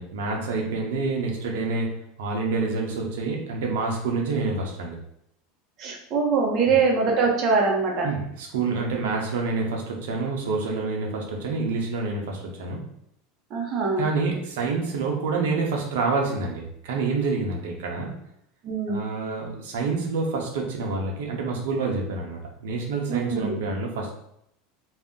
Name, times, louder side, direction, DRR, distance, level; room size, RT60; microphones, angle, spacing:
voice 1, 0.0-1.9 2.2-5.0 6.7-6.8 8.0-12.8 14.0-18.1 18.9-24.1, right 4 dB, 85° right, 0 dB, 0.7 m, -27 dB
voice 2, 5.8-8.1 13.5-14.1 18.6-19.0 23.1-23.6, right 4 dB, 40° right, -1 dB, 0.5 m, -23 dB
2.6 x 2.0 x 3.6 m, 0.75 s
supercardioid pair, 150°, 0 cm